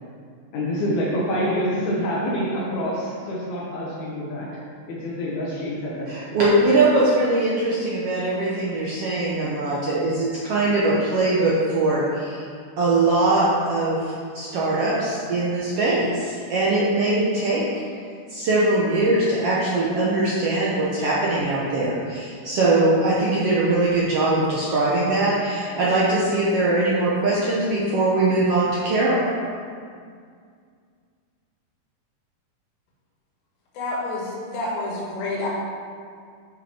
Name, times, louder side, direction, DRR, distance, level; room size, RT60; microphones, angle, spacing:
voice 1, 0.5-4.6 4.9-6.1, equal, 65° left, -4 dB, 2.1 m, -26 dB
voice 2, 6.1-12.4 12.8-14.0 14.3-18.0 18.3-29.2, right 2 dB, 85° right, -7 dB, 1.3 m, -21 dB
voice 3, 33.7-35.5, left 2 dB, 80° left, -4 dB, 3.3 m, -28 dB
8.5 x 5.5 x 4.4 m, 2.1 s
omnidirectional pair, 4.2 m